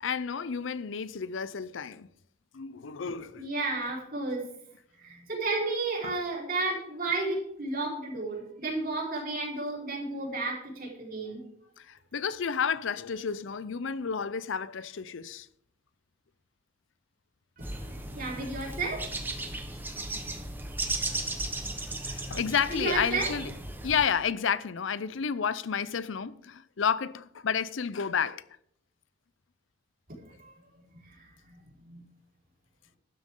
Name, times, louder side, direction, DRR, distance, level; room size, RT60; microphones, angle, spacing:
voice 1, 0.0-2.1 2.5-3.5 6.0-6.2 11.8-15.5 22.1-23.5 23.8-28.4, left 6 dB, 75° left, 0.5 m, -31 dB
voice 2, 3.4-4.5 5.0-11.4 17.6-17.8 18.1-19.1 22.7-23.3 30.3-30.5 31.0-31.6 31.8-32.0, right 3 dB, 45° right, 4.4 m, -32 dB
sound 1, 17.6-24.1, right 2 dB, 10° right, 1.2 m, -36 dB
12.5 x 11.5 x 3.8 m
head